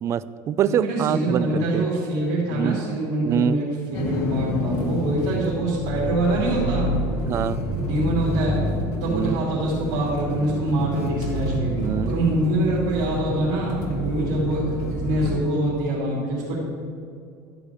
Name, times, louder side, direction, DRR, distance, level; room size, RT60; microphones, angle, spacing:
voice 1, 0.0-1.9 2.5-2.8 3.2-3.6 5.3-5.5 7.2-7.6 9.0-9.4 11.6-12.1, right 9 dB, 30° right, 16 dB, 0.3 m, -25 dB
voice 2, 0.6-3.7 3.9-6.9 7.8-8.6 9.0-11.8 12.1-16.6, right 1 dB, 85° right, -6 dB, 2.9 m, -24 dB
sound 1, 3.9-15.4, left 1 dB, 50° left, 1.9 m, -28 dB
12.5 x 5.0 x 6.3 m, 2.4 s
supercardioid pair, 135°, 9 cm